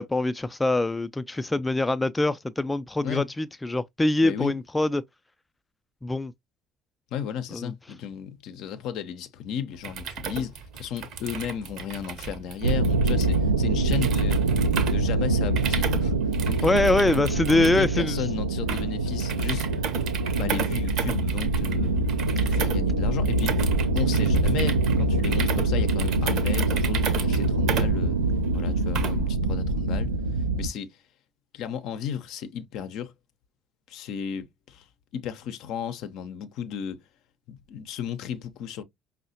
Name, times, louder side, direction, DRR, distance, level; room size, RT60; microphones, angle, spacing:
voice 1, 0.0-5.0 6.0-6.3 7.5-7.7 16.6-18.2, left 2 dB, 15° left, 0.4 m, -24 dB
voice 2, 4.2-4.6 7.1-14.4 14.9-16.1 16.5-16.7 17.5-19.7 20.3-22.0 22.4-23.7 23.9-28.2 28.5-31.0 31.5-33.1 33.9-34.9 35.1-37.0 37.5-38.8, left 8 dB, 60° left, 0.6 m, -34 dB
sound 1, 9.7-29.4, right 6 dB, 60° right, 0.7 m, -34 dB
sound 2, 12.6-30.7, right 2 dB, 85° right, 0.3 m, -24 dB
5.4 x 2.1 x 2.7 m
figure-of-eight pair, 55°, 0 cm